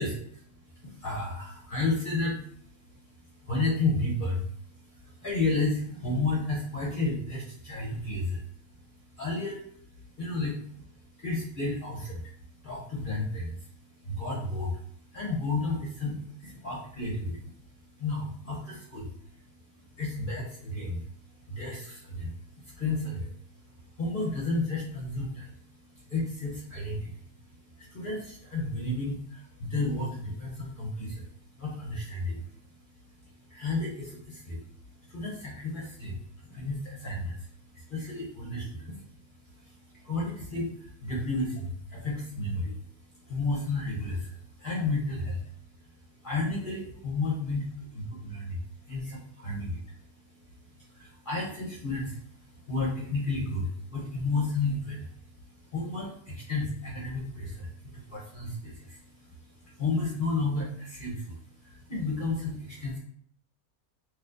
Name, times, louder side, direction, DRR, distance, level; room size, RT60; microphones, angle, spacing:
voice 1, 0.0-63.0, left 2 dB, 45° left, -4 dB, 0.8 m, -33 dB
4.1 x 2.4 x 2.5 m, 0.63 s
omnidirectional pair, 1.6 m